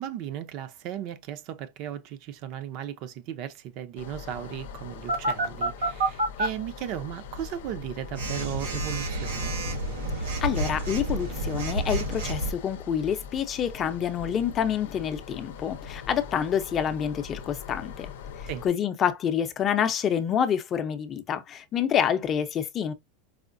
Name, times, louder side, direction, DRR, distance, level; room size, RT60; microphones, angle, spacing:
voice 1, 0.0-9.6 18.5-18.6, right 10 dB, 50° right, 0.5 m, -36 dB
sound 1, 4.0-18.7, left 6 dB, 85° left, 0.6 m, -42 dB
Telephone, 5.1-6.5 8.2-12.5, right 2 dB, 90° right, 1.7 m, -29 dB
voice 2, 10.4-18.1 18.6-22.9, left 8 dB, 30° left, 0.5 m, -27 dB
4.8 x 2.1 x 2.5 m
supercardioid pair, 135°, 0 cm